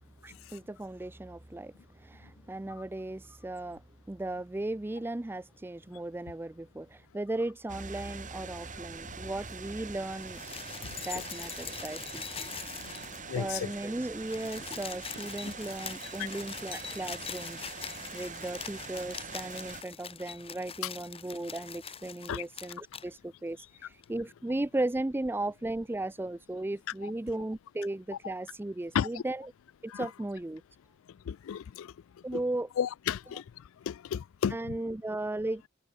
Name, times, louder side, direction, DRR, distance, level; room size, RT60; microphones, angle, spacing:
voice 1, 0.2-10.4 11.1-12.5 13.4-17.7 18.1-29.4 29.8-30.6 32.2-32.7 34.5-35.6, right 2 dB, 10° right, 0.4 m, -36 dB
sound 1, 7.7-19.8, right 5 dB, 40° right, 2.7 m, -44 dB
sound 2, 10.1-13.4 13.7-13.8 14.1-23.1 24.0-24.1, left 7 dB, 25° left, 1.2 m, -43 dB
voice 2, 10.8-11.2 12.6-12.9 13.3-13.7 15.4-15.6 16.2-16.3 20.8-20.9 22.3-22.4 27.0-27.1 28.9-29.2 29.9-30.1 31.1-31.9 32.3-32.4 32.8-34.8, left 8 dB, 70° left, 0.3 m, -34 dB
head